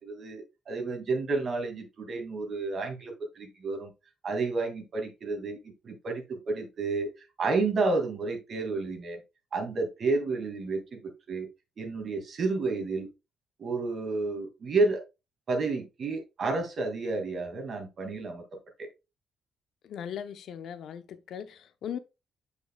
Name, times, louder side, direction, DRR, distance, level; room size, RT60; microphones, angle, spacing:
voice 1, 0.0-3.9 4.2-7.1 7.4-9.2 9.5-11.0 11.3-11.5 11.8-13.1 13.6-15.0 15.5-18.4 18.8-18.9, right 3 dB, 50° right, 2.2 m, -30 dB
voice 2, 19.8-22.0, left 8 dB, 70° left, 0.7 m, -38 dB
8.1 x 5.4 x 2.3 m
cardioid pair, 90°, 0 cm